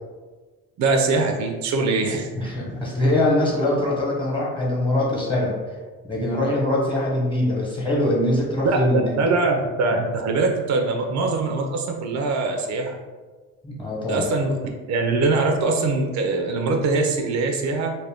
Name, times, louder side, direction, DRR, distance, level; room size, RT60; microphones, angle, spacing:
voice 1, 0.8-2.3 8.6-13.0 14.1-14.6 14.9-18.0, right 3 dB, 65° right, 3 dB, 0.5 m, -22 dB
voice 2, 2.4-5.5 6.1-9.1 13.6-14.2, left 1 dB, 15° left, -4 dB, 1.0 m, -22 dB
2.5 x 2.1 x 3.4 m, 1.3 s
cardioid pair, 90°, 30 cm